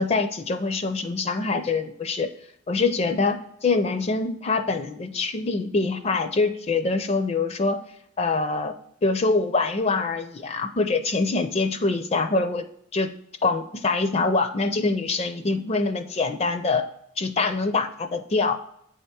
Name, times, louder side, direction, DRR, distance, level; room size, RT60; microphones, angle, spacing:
voice 1, 0.0-2.3 2.7-7.8 8.2-8.7 9.0-12.7 12.9-13.1 13.4-16.8 17.2-18.6, left 3 dB, 30° left, 9 dB, 0.4 m, -24 dB
8.2 x 3.5 x 4.3 m, 0.71 s
head